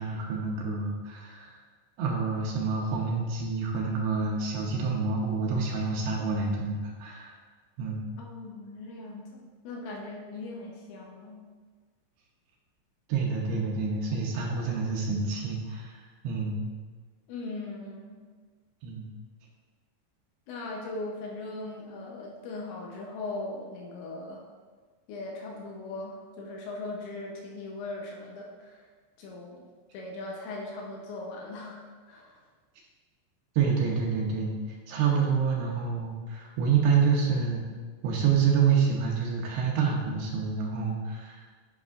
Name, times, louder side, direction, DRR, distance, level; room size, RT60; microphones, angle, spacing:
voice 1, 0.0-1.5 2.0-7.3 7.8-8.1 13.1-15.9 16.2-16.7 18.8-19.1 33.6-34.5 34.9-37.6 38.0-41.4, right 5 dB, 80° right, -2 dB, 2.4 m, -27 dB
voice 2, 8.2-11.4 17.3-18.2 20.5-24.4 25.1-28.9 29.2-29.6 29.9-32.4, left 2 dB, 80° left, -1 dB, 3.0 m, -39 dB
11.0 x 5.4 x 2.4 m, 1.5 s
omnidirectional pair, 5.6 m